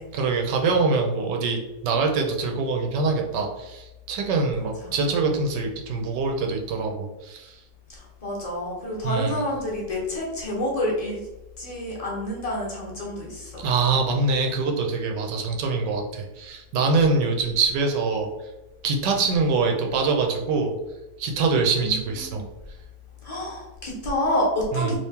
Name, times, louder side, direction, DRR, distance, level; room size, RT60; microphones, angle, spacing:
voice 1, 0.1-7.6 9.0-9.4 13.6-18.3 18.8-20.7 21.2-22.4 24.7-24.9, right 4 dB, 90° right, 2 dB, 1.3 m, -24 dB
voice 2, 4.6-4.9 7.9-11.2 11.6-13.6 21.8-22.0 23.2-25.0, left 1 dB, 30° left, -5 dB, 0.8 m, -28 dB
3.0 x 2.8 x 3.5 m, 1.0 s
omnidirectional pair, 1.8 m